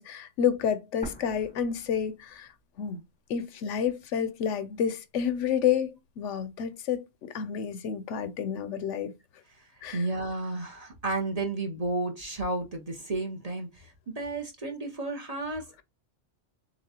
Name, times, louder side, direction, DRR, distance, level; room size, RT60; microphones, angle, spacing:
voice 1, 0.0-2.5 2.8-3.0 3.3-9.1 9.8-10.0, left 8 dB, 80° left, 0.9 m, -29 dB
sound 1, 1.0-3.0 3.3-3.4 4.1-5.0, right 1 dB, 10° left, 0.9 m, -46 dB
voice 2, 9.5-15.7, right 2 dB, 35° right, 0.8 m, -32 dB
7.0 x 2.4 x 2.8 m
omnidirectional pair, 1.3 m